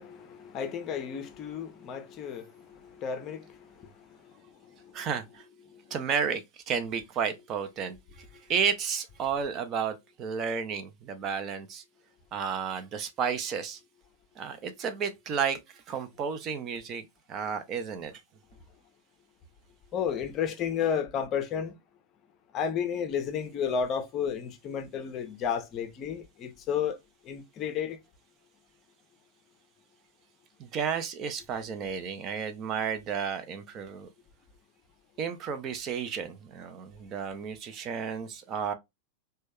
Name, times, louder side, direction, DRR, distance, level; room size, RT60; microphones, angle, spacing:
voice 1, 0.0-5.0 5.7-5.8 19.9-21.7 22.5-27.0 27.2-28.0, left 7 dB, 35° left, 0.5 m, -33 dB
voice 2, 4.9-5.4 5.9-11.8 12.3-13.8 14.4-18.2 30.6-34.1 35.2-38.7, right 7 dB, 35° right, 0.5 m, -32 dB
3.0 x 2.2 x 3.3 m
figure-of-eight pair, 90°, 0 cm